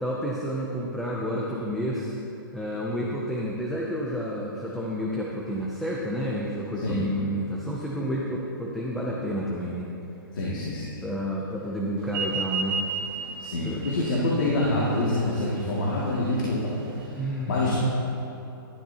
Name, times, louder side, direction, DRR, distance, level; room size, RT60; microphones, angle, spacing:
voice 1, 0.0-2.1 2.5-9.9 11.0-12.8 13.6-13.9 17.2-17.8, equal, ahead, -5 dB, 0.3 m, -30 dB
voice 2, 6.8-7.1 10.3-11.0 13.4-16.8 17.1-17.2 17.5-17.8, left 2 dB, 55° left, -6 dB, 2.0 m, -26 dB
sound 1, 12.1-17.1, right 6 dB, 20° right, 1.0 m, -34 dB
17.0 x 12.0 x 2.8 m, 3.0 s
hypercardioid pair, 175°, 12 cm